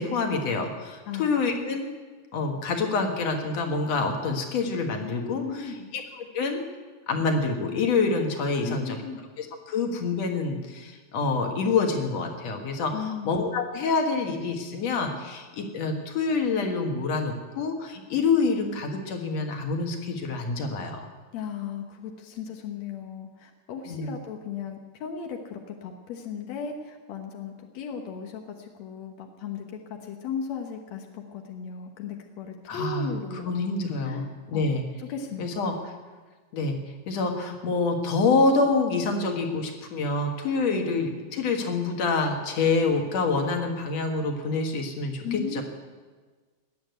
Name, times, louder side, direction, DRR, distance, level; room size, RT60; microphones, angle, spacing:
voice 1, 0.0-1.9 2.3-5.4 5.9-6.6 7.1-9.0 9.4-21.0 23.9-24.1 32.7-33.1 33.4-34.9 35.4-35.7 36.5-36.8 37.1-45.6, left 4 dB, 55° left, 3 dB, 2.2 m, -27 dB
voice 2, 5.4-5.9 8.6-9.2 12.9-13.4 21.3-33.5 34.0-34.3 34.5-34.7 35.0-35.6 40.7-41.0 45.2-45.6, left 6 dB, 75° left, 3 dB, 1.6 m, -36 dB
20.0 x 7.8 x 9.3 m, 1.4 s
omnidirectional pair, 4.7 m